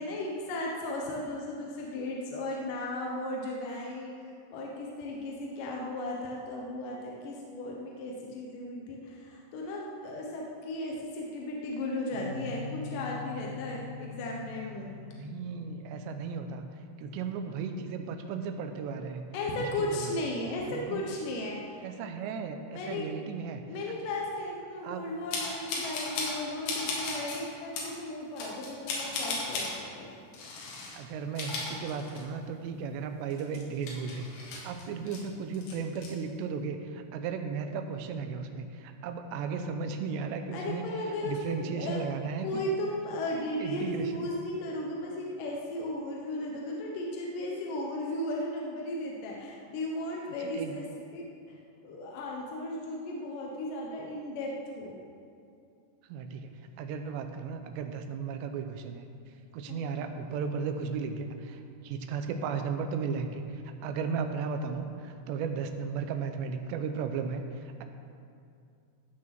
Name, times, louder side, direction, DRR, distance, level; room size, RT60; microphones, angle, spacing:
voice 1, 0.0-4.1 4.5-14.9 19.3-21.8 22.7-23.1 23.7-30.2 40.5-42.0 42.4-50.8 51.1-51.6 51.8-55.0 59.7-59.8, left 1 dB, 70° left, -2 dB, 2.2 m, -35 dB
sound 1, 12.1-20.8, left 4 dB, 50° right, 2.7 m, -45 dB
voice 2, 15.1-16.7 17.0-19.3 19.6-20.3 20.7-21.0 21.8-23.7 24.8-25.1 30.9-40.9 41.2-42.6 43.6-44.3 50.5-50.8 56.1-59.1 59.5-67.8, right 5 dB, 90° right, 7 dB, 3.0 m, -35 dB
sound 2, 25.3-26.4 26.7-27.4 27.7-27.9 28.4-29.7 30.3-31.0 31.3-32.5 32.8-32.9 33.3-35.2 35.5-36.1, left 3 dB, 85° left, 4.1 m, -35 dB
15.5 x 6.4 x 5.9 m, 2.4 s
omnidirectional pair, 4.9 m